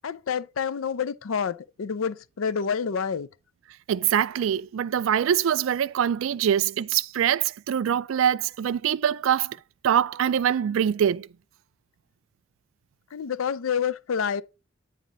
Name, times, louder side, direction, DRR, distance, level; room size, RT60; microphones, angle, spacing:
voice 1, 0.0-3.3 13.1-14.4, left 6 dB, 90° left, 0.5 m, -28 dB
voice 2, 3.9-9.6 9.8-11.3, right 9 dB, 75° right, 0.3 m, -24 dB
9.1 x 4.3 x 3.8 m
head